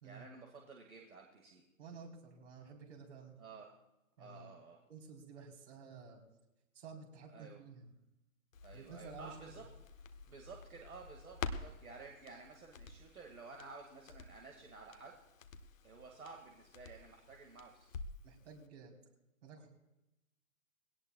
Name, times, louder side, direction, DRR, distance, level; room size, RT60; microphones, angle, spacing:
voice 1, 0.0-1.6 3.4-3.8 4.2-4.8 7.3-7.6 8.6-9.6 10.3-15.2 15.8-17.9, right 4 dB, 75° right, 1 dB, 2.1 m, -53 dB
voice 2, 1.8-3.4 4.2-4.6 4.9-6.2 6.7-7.9 8.7-9.4 18.2-19.0 19.4-19.7, right 5 dB, 55° right, 1 dB, 3.8 m, -52 dB
Crackle, 8.5-18.3 18.6-18.7, left 4 dB, 65° left, 1.1 m, -49 dB
20.5 x 17.5 x 2.3 m, 0.94 s
figure-of-eight pair, 130°, 43 cm